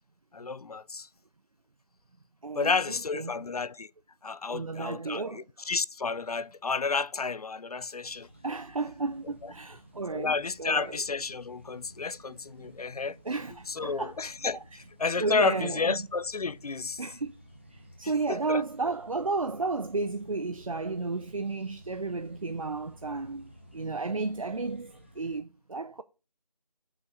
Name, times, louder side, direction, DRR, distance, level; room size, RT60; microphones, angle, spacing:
voice 1, 0.3-1.1 2.5-3.9 4.2-8.3 9.4-9.5 10.1-13.2 13.7-17.0 18.0-18.6, left 4 dB, 65° left, 0.4 m, -31 dB
voice 2, 2.4-2.8 3.1-3.4 4.5-5.4 8.4-10.3 10.6-11.0 12.6-12.7 13.3-14.2 14.5-14.6 15.2-16.0 17.0-17.3 17.7-26.0, right 3 dB, 55° right, 0.5 m, -33 dB
sound 1, 8.1-25.4, equal, 15° right, 0.8 m, -54 dB
6.7 x 5.8 x 5.2 m
figure-of-eight pair, 175°, 21 cm